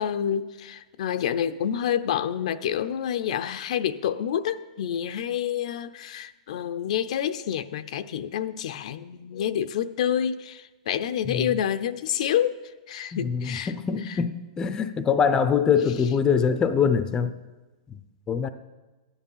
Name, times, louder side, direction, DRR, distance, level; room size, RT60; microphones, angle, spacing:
voice 1, 0.0-12.6 12.9-13.7, left 9 dB, 65° left, 11 dB, 0.6 m, -28 dB
voice 2, 13.2-17.4 17.9-18.0 18.3-18.5, left 6 dB, 15° left, 11 dB, 0.6 m, -24 dB
14.0 x 9.9 x 5.6 m, 1.2 s
hypercardioid pair, 150°, 4 cm